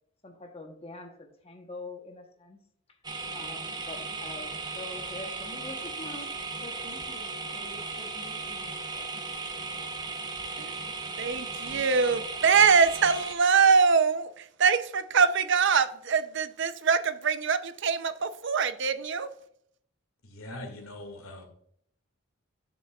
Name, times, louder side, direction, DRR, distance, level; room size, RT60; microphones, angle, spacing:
voice 1, 0.2-2.6 2.9-3.0 3.3-6.3 6.6-9.1, left 2 dB, 30° left, 3 dB, 1.0 m, -45 dB
sound 1, 3.0-13.3, right 3 dB, 20° right, 0.7 m, -36 dB
voice 2, 11.2-19.3, right 5 dB, 55° right, 11 dB, 0.5 m, -24 dB
voice 3, 20.2-21.5, left 1 dB, 80° left, 3 dB, 2.1 m, -42 dB
9.5 x 7.1 x 2.3 m, 0.68 s
head